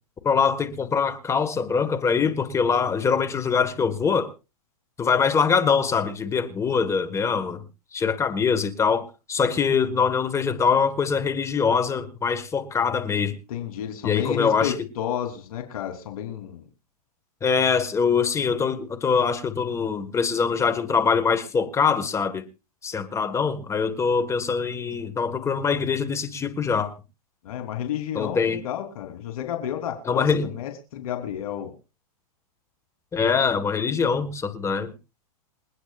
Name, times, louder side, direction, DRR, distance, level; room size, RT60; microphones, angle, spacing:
voice 1, 0.2-4.3 5.0-7.6 7.9-13.3 14.0-14.7 17.4-22.4 22.8-26.9 28.1-28.6 30.1-30.5 33.1-34.9, left 6 dB, 15° left, 11 dB, 1.5 m, -23 dB
voice 2, 13.5-16.6 27.4-31.7, left 10 dB, 70° left, 4 dB, 3.4 m, -31 dB
28.0 x 9.4 x 2.5 m, 0.30 s
hypercardioid pair, 140°, 19 cm